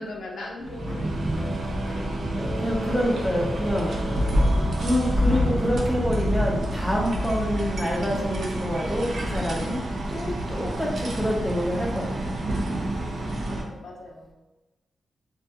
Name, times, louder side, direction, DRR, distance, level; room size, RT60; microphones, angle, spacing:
voice 1, 0.0-1.3 12.9-14.3, left 2 dB, 70° left, -1 dB, 0.5 m, -39 dB
sound 1, 0.6-13.6, equal, 55° right, 0.4 m, -28 dB
sound 2, 0.8-5.9, equal, 15° right, 0.8 m, -34 dB
voice 2, 2.6-4.3 4.8-9.8 10.1-12.3, equal, 5° left, -3 dB, 0.5 m, -27 dB
2.2 x 2.2 x 2.7 m, 1.1 s
wide cardioid pair, 145°, 0 cm